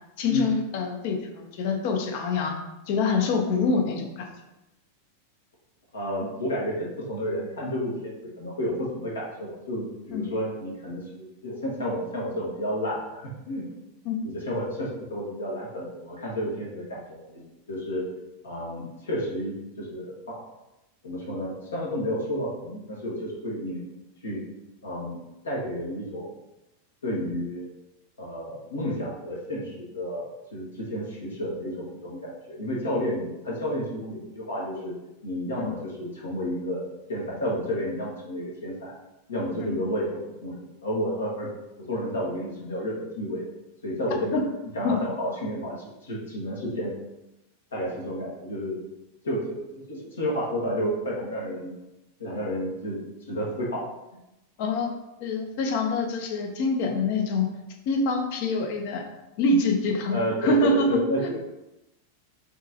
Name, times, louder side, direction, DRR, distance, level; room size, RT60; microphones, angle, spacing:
voice 1, 0.2-2.6 2.9-4.2 10.1-10.3 14.0-14.2 35.6-35.7 39.6-39.8 44.3-44.4 44.8-45.0 54.6-54.9 55.2-57.5 57.9-59.0 59.4-60.9, left 3 dB, 50° left, 3 dB, 0.8 m, -25 dB
voice 2, 5.9-13.6 14.2-17.4 17.7-18.0 18.4-20.4 21.0-23.8 24.2-24.4 24.8-25.2 25.4-26.3 27.0-27.7 28.2-30.2 30.5-34.9 35.2-36.8 37.1-38.9 39.3-41.5 41.9-43.4 43.8-44.4 44.7-46.9 47.7-48.7 49.2-49.6 49.9-51.7 52.2-53.0 53.3-53.9 60.1-61.4, equal, 70° left, -4 dB, 1.5 m, -31 dB
6.0 x 3.1 x 2.8 m, 0.94 s
figure-of-eight pair, 90°, 0 cm